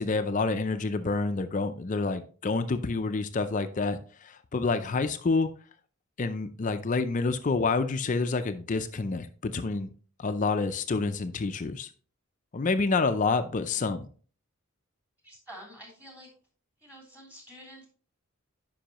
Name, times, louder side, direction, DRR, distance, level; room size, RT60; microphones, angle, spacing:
voice 1, 0.0-5.5 6.2-9.9 10.2-11.9 12.5-14.1, left 3 dB, 35° left, 10 dB, 0.5 m, -28 dB
voice 2, 15.2-16.3 16.8-17.9, equal, 10° right, -1 dB, 3.1 m, -48 dB
10.0 x 5.4 x 2.9 m, 0.41 s
head